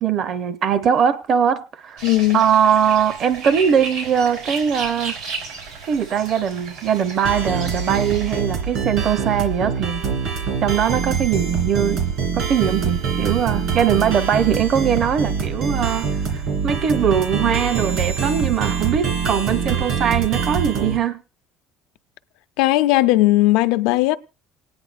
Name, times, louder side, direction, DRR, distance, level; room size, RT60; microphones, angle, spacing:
voice 1, 0.0-2.0 2.3-5.2 5.9-10.0 10.6-12.0 12.3-21.2, right 8 dB, 50° right, 0.7 m, -21 dB
voice 2, 2.0-2.4 22.6-24.2, left 17 dB, 90° left, 0.5 m, -17 dB
sound 1, 2.0-8.4, right 4 dB, 90° right, 3.6 m, -33 dB
sound 2, 7.2-21.0, right 6 dB, 65° right, 2.7 m, -24 dB
27.5 x 9.7 x 2.5 m
cardioid pair, 125°, 0 cm